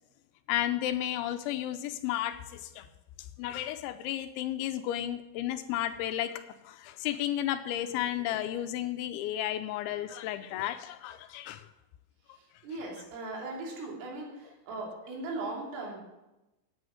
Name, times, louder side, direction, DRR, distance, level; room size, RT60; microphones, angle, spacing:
voice 1, 0.5-2.9 3.4-11.7, left 12 dB, 80° left, 10 dB, 2.8 m, -33 dB
voice 2, 12.3-16.0, right 2 dB, 85° right, -2 dB, 5.7 m, -39 dB
16.0 x 8.6 x 6.3 m, 0.99 s
omnidirectional pair, 5.6 m